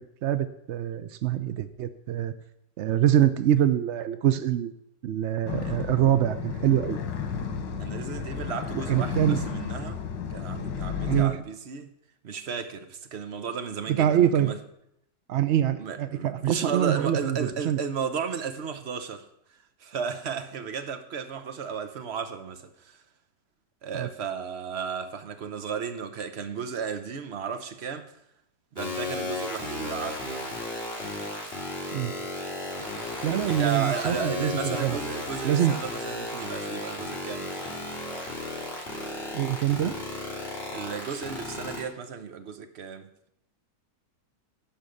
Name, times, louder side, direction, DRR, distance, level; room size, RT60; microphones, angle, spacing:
voice 1, 0.0-2.3 2.8-4.7 5.0-7.0 8.9-9.4 11.0-11.4 13.9-14.6 15.3-17.8 23.9-24.1 31.9-32.1 33.2-35.0 35.4-35.8 39.3-40.0, right 11 dB, 85° right, 0.6 m, -25 dB
sound 1, 5.5-11.2, left 6 dB, 85° left, 1.9 m, -33 dB
voice 2, 7.8-10.0 10.3-11.9 12.2-14.6 15.8-19.3 19.8-23.0 23.8-28.1 28.7-30.6 33.5-37.7 40.7-43.1, right 6 dB, 45° right, 0.9 m, -34 dB
sound 2, 28.8-41.8, left 2 dB, 30° left, 3.7 m, -33 dB
11.5 x 5.3 x 8.5 m
omnidirectional pair, 1.9 m